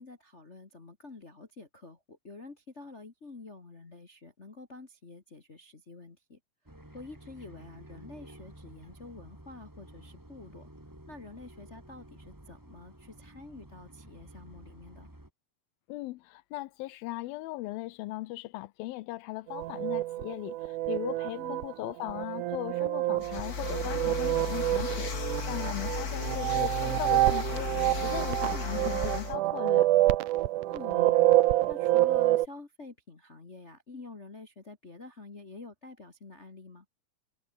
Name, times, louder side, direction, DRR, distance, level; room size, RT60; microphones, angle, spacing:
voice 1, 0.0-6.4 6.9-10.7 11.1-15.1 21.3-21.7 25.8-26.1 28.5-28.7 30.6-31.4 31.7-36.8, left 3 dB, 50° left, 0.8 m, -48 dB
sound 1, 6.7-15.3, right 1 dB, 5° right, 2.3 m, -52 dB
voice 2, 15.9-25.1 25.4-27.7 28.0-29.9, left 18 dB, 80° left, 2.4 m, -38 dB
sound 2, 19.5-32.5, right 16 dB, 75° right, 1.9 m, -27 dB
sound 3, 23.2-29.3, left 5 dB, 35° left, 1.7 m, -35 dB
omnidirectional pair, 4.5 m